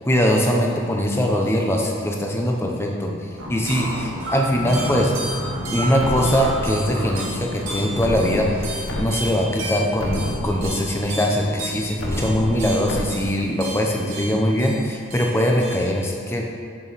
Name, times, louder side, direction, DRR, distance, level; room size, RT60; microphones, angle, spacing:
voice 1, 0.0-3.2 3.5-5.1 5.7-16.5, equal, 10° left, 0 dB, 0.7 m, -22 dB
sound 1, 3.4-15.8, right 1 dB, 65° right, 1.4 m, -31 dB
sound 2, 6.0-7.0 8.0-9.0 9.5-9.6 10.0-11.0 12.0-13.0, left 1 dB, 60° left, 1.1 m, -29 dB
7.0 x 7.0 x 4.1 m, 2.3 s
head